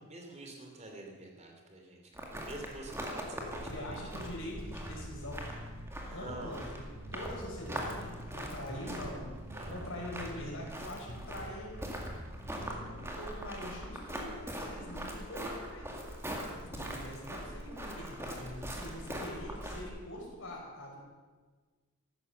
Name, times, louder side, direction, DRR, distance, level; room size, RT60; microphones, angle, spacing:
voice 1, 0.1-4.0 5.9-6.6 9.5-9.8 12.9-13.2, right 2 dB, 30° right, 2 dB, 3.0 m, -48 dB
sound 1, 2.1-19.8, equal, 10° right, 2.1 m, -42 dB
Bass guitar, 3.4-13.0, equal, 60° right, 2.6 m, -47 dB
voice 2, 3.7-5.4 6.1-6.8 7.1-11.9 12.4-15.8 16.6-21.0, left 1 dB, 60° left, -1 dB, 5.0 m, -44 dB
14.5 x 12.0 x 6.9 m, 1.4 s
head